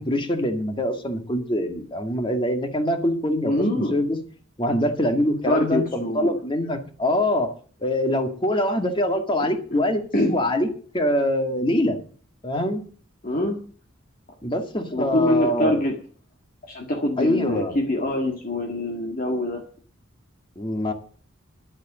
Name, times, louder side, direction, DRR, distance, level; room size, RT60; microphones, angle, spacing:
voice 1, 0.0-4.2 4.6-7.5 7.8-10.7 10.9-12.0 12.4-12.8 14.4-15.8 17.2-17.8 20.6-20.9, left 1 dB, 25° left, 6 dB, 1.9 m, -24 dB
voice 2, 3.5-3.9 5.5-6.3 10.1-10.3 13.2-13.6 14.9-15.9 16.6-19.6, left 1 dB, 40° left, 1 dB, 1.9 m, -24 dB
11.5 x 8.1 x 7.4 m, 0.43 s
head